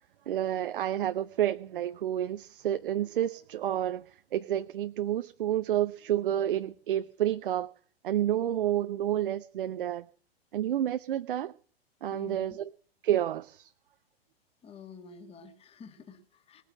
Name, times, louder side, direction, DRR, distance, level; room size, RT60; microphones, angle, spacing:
voice 1, 0.3-7.7 8.0-10.1 10.5-11.5 12.0-12.7 13.0-13.7, right 11 dB, 55° right, 0.8 m, -30 dB
voice 2, 12.1-12.6 14.6-16.6, left 5 dB, 20° left, 2.2 m, -49 dB
20.0 x 9.1 x 7.6 m
figure-of-eight pair, 105°, 31 cm